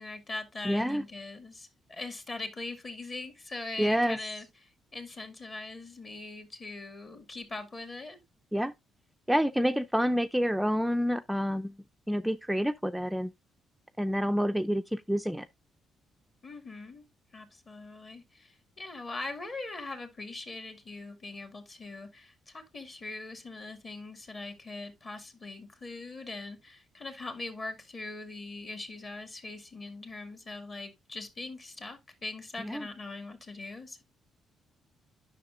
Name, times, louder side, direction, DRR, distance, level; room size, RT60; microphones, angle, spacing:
voice 1, 0.0-8.2 16.4-17.1 17.3-34.0, left 2 dB, 35° left, 2.3 m, -41 dB
voice 2, 0.6-1.0 3.8-4.2 8.5-8.7 9.3-11.8 12.1-13.3 14.0-15.5 32.6-32.9, equal, 5° right, 0.4 m, -28 dB
9.8 x 6.0 x 2.5 m
cardioid pair, 90°, 0 cm